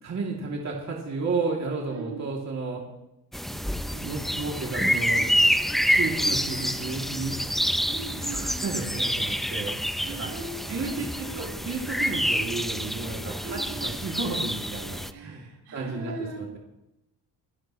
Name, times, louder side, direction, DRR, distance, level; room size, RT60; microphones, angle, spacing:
voice 1, 0.0-2.8 3.5-3.6 3.9-5.3 5.9-7.4 8.3-9.7 10.1-10.3 10.7-15.4 15.7-16.6, right 3 dB, 40° right, -2 dB, 2.8 m, -32 dB
voice 2, 1.9-2.2 7.9-8.7 10.0-11.5 13.4-13.9 15.1-16.4, right 3 dB, 85° right, -2 dB, 6.8 m, -39 dB
sound 1, 3.3-15.1, equal, ahead, 0.6 m, -27 dB
26.5 x 11.0 x 3.2 m, 0.92 s
cardioid pair, 95°, 40 cm